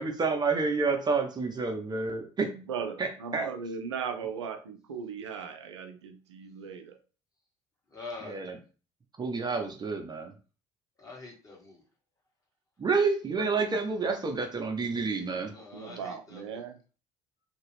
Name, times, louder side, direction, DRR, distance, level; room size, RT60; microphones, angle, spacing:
voice 1, 0.0-2.5 3.0-3.5 8.2-8.6 9.2-10.3 12.8-15.5, right 4 dB, 30° right, 3 dB, 0.9 m, -29 dB
voice 2, 2.5-7.0 13.4-13.8 15.7-16.8, right 6 dB, 85° right, 6 dB, 0.4 m, -38 dB
voice 3, 7.9-8.4 11.0-11.8 15.5-16.6, left 3 dB, 25° left, -2 dB, 1.6 m, -44 dB
2.9 x 2.8 x 3.2 m, 0.35 s
hypercardioid pair, 60°, 14 cm